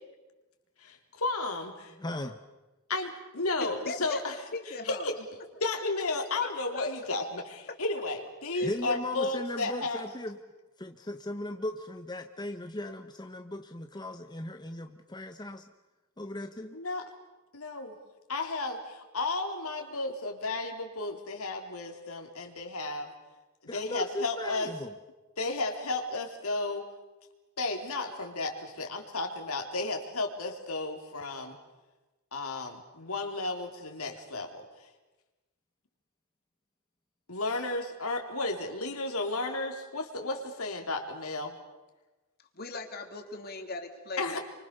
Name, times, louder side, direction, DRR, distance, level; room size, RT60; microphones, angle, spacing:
voice 1, 0.8-2.0 2.9-4.4 4.9-5.1 5.6-10.0 16.7-17.1 17.5-18.0 18.3-23.1 23.7-24.7 25.4-26.9 27.6-31.6 32.3-34.6 37.3-41.6 44.2-44.4, left 2 dB, 75° left, 3 dB, 3.8 m, -33 dB
voice 2, 2.0-2.4 8.6-10.4 10.8-15.6 16.2-16.8 23.7-24.9, left 1 dB, 20° left, 6 dB, 1.1 m, -37 dB
voice 3, 3.6-4.2 4.5-5.1 5.6-6.9 8.5-8.8 42.5-44.4, left 3 dB, 45° left, 4 dB, 3.2 m, -39 dB
29.0 x 25.0 x 6.9 m, 1.1 s
head